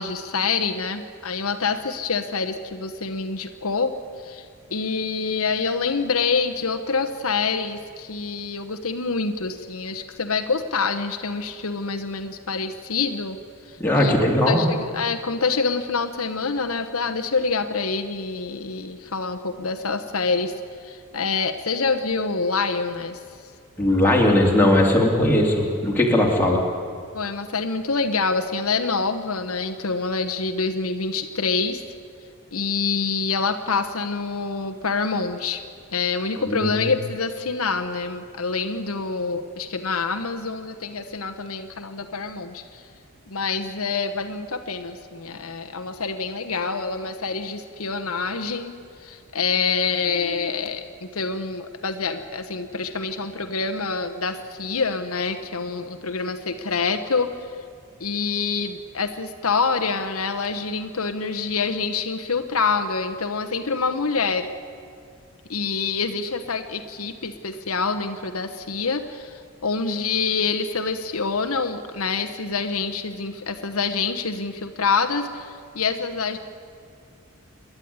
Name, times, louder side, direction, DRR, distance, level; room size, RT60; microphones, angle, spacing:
voice 1, 0.0-13.4 13.7-14.2 14.5-23.2 27.1-31.8 32.5-35.6 35.9-42.8 43.3-57.6 58.0-64.5 65.5-76.4, left 4 dB, 75° left, 7 dB, 1.1 m, -26 dB
voice 2, 13.8-14.6 23.8-26.6 36.5-36.7, left 1 dB, 10° left, -2 dB, 3.1 m, -19 dB
27.5 x 11.5 x 9.6 m, 2.3 s
head